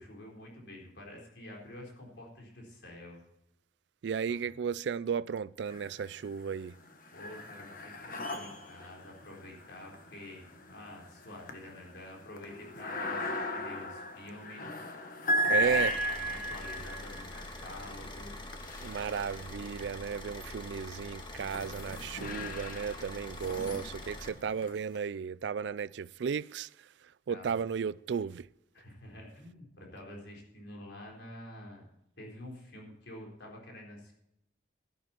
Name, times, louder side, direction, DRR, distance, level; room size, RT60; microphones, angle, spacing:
voice 1, 0.0-3.2 4.3-4.4 7.1-14.6 15.4-18.3 23.5-23.8 25.7-25.8 27.3-27.6 28.7-31.9 32.2-34.1, left 1 dB, 65° left, 4.2 m, -48 dB
voice 2, 4.0-6.8 15.5-16.0 18.8-26.7 27.3-28.5, right 6 dB, 65° right, 0.3 m, -34 dB
sound 1, 5.7-6.3 6.7-19.9 20.5-25.0, equal, 50° left, 1.4 m, -37 dB
Car / Idling, 15.6-24.3, left 1 dB, 25° left, 1.6 m, -44 dB
13.0 x 11.5 x 4.4 m
head